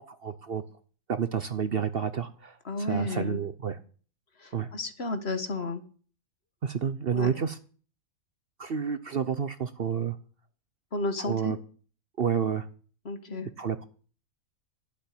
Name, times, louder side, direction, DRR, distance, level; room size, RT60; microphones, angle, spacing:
voice 1, 0.2-0.6 1.1-2.5 2.9-3.8 4.5-4.7 6.6-7.5 8.6-10.1 11.2-11.6 12.2-12.6 13.3-13.8, right 7 dB, 50° right, 12 dB, 0.9 m, -29 dB
voice 2, 2.6-3.4 4.4-5.8 7.1-7.3 10.9-11.6 13.0-13.5, left 2 dB, 50° left, 9 dB, 1.6 m, -32 dB
12.0 x 7.1 x 9.6 m, 0.41 s
omnidirectional pair, 1.5 m